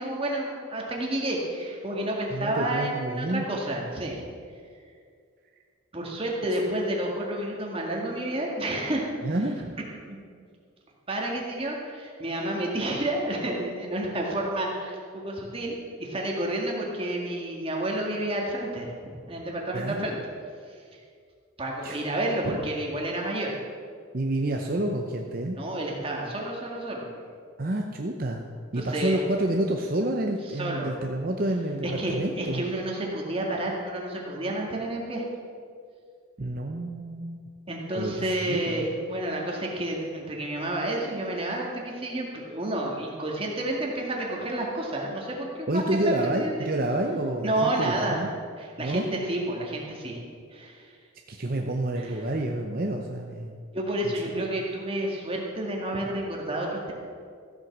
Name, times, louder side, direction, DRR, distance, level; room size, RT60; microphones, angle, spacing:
voice 1, 0.0-4.2 5.9-9.1 10.1-10.2 11.1-18.9 19.3-20.2 21.6-23.6 25.6-27.1 28.8-29.2 30.6-30.9 31.8-35.2 37.7-45.8 46.3-46.7 47.4-48.2 48.6-50.2 50.5-50.9 52.0-52.3 53.7-56.9, right 1 dB, 25° right, -1 dB, 1.9 m, -30 dB
voice 2, 2.3-3.5 6.5-6.6 9.2-9.8 19.7-20.0 21.8-22.0 22.4-22.6 24.1-25.6 27.6-28.4 28.7-32.6 36.4-37.4 38.0-38.9 45.7-48.3 48.8-49.1 51.3-53.5 54.0-54.4, right 1 dB, 45° right, 2 dB, 0.7 m, -29 dB
14.5 x 7.9 x 6.1 m, 2.2 s
head